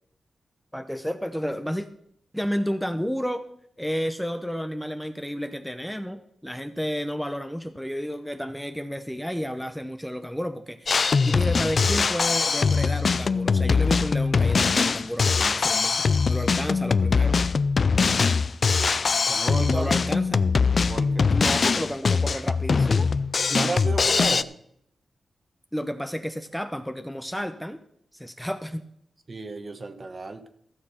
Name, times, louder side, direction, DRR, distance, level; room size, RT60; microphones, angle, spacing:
voice 1, 0.7-1.9 2.3-3.4 3.8-11.0 11.2-17.4 19.7-20.4 21.3-23.1 25.7-27.8 28.1-28.8, equal, ahead, 8 dB, 0.8 m, -31 dB
Drum kit, 10.9-24.4, left 5 dB, 55° left, 0.4 m, -22 dB
voice 2, 19.3-20.1 20.9-21.3 23.5-24.5 29.3-30.5, right 3 dB, 40° right, 9 dB, 1.2 m, -32 dB
14.5 x 6.6 x 5.7 m, 0.71 s
cardioid pair, 80°, 0 cm